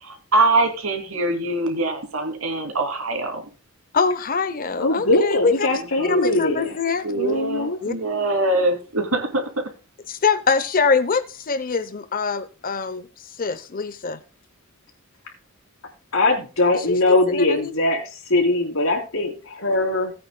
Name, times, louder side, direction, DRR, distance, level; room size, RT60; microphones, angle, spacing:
voice 1, 0.0-3.4 6.0-6.3 7.0-9.6, right 2 dB, 85° right, 2.8 m, -23 dB
voice 2, 3.9-7.1 7.8-7.9 10.1-14.2 16.7-17.7, left 5 dB, 40° left, 0.7 m, -24 dB
voice 3, 4.8-6.7 7.1-7.8 16.1-20.1, left 2 dB, 70° left, 3.7 m, -21 dB
18.5 x 8.8 x 2.2 m
head